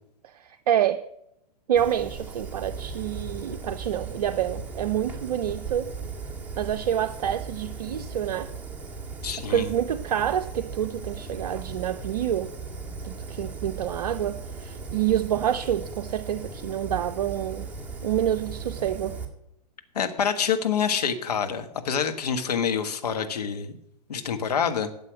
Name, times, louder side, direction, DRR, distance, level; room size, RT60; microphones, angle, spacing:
voice 1, 0.2-1.0 1.7-5.9 6.6-8.5 9.5-12.5 13.0-17.7 18.0-19.2, right 10 dB, 60° right, 9 dB, 0.6 m, -27 dB
Fire, 1.8-19.3, right 4 dB, 10° right, 2.0 m, -37 dB
voice 2, 9.2-9.7 19.9-23.8 24.1-24.9, left 7 dB, 70° left, 7 dB, 1.4 m, -26 dB
12.0 x 7.8 x 6.1 m, 0.82 s
figure-of-eight pair, 105°, 21 cm